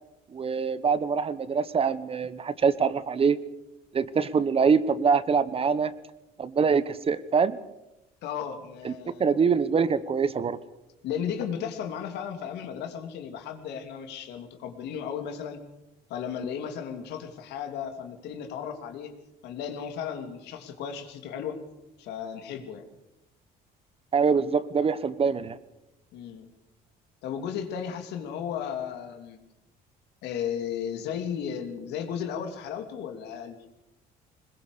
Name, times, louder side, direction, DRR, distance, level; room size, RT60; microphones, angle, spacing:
voice 1, 0.3-3.4 3.9-5.9 6.4-7.6 8.8-8.9 9.2-10.6 24.1-25.6, right 5 dB, 35° right, 15 dB, 1.1 m, -24 dB
voice 2, 8.2-9.2 11.0-15.6 16.1-19.1 19.4-21.6 22.0-22.9 26.1-26.5 27.2-29.4 30.2-33.6, left 8 dB, 85° left, 6 dB, 2.7 m, -35 dB
21.0 x 21.0 x 6.8 m, 0.93 s
cardioid pair, 110°, 17 cm